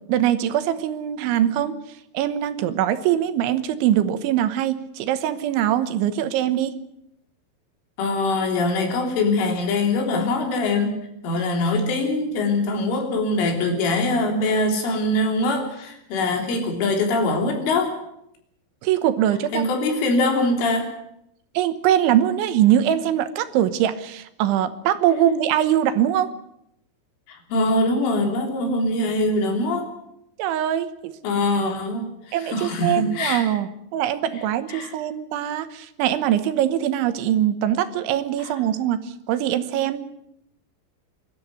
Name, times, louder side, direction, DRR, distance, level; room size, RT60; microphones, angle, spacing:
voice 1, 0.1-1.8 2.2-6.8 18.8-19.7 21.6-26.3 30.4-31.1 32.3-40.1, right 11 dB, 85° right, 11 dB, 3.4 m, -22 dB
voice 2, 8.0-18.0 19.5-20.9 27.3-29.9 31.2-33.5 34.7-34.9 38.4-38.5, left 2 dB, 90° left, 3 dB, 6.0 m, -23 dB
24.0 x 13.0 x 9.6 m, 0.80 s
omnidirectional pair, 5.5 m